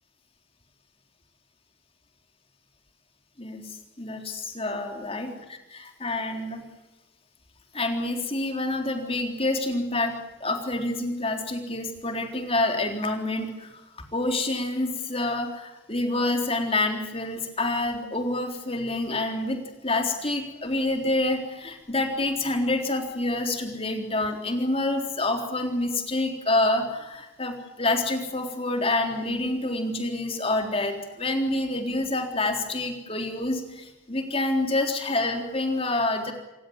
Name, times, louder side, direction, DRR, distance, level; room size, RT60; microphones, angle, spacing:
voice 1, 3.4-3.7 4.0-6.6 7.7-10.2 10.4-13.7 14.1-36.3, left 2 dB, 30° left, 4 dB, 3.7 m, -27 dB
28.0 x 17.0 x 9.7 m, 1.0 s
head